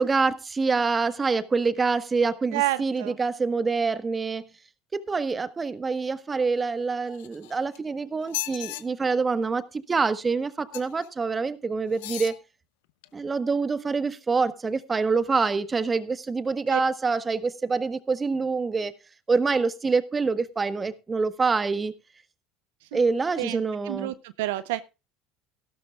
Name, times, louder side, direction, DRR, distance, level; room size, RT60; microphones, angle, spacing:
voice 1, 0.0-4.4 4.9-12.4 13.1-18.9 19.3-21.9 22.9-24.1, right 4 dB, 25° right, 1.3 m, -26 dB
voice 2, 2.5-3.2 16.7-16.8 22.9-23.0 23.4-24.8, right 17 dB, 75° right, 0.5 m, -29 dB
sound 1, 7.1-7.8 8.2-8.8 10.7-11.1 11.9-12.4 13.0-13.1, left 18 dB, 75° left, 0.8 m, -35 dB
16.0 x 12.5 x 2.4 m
hypercardioid pair, 70°, 0 cm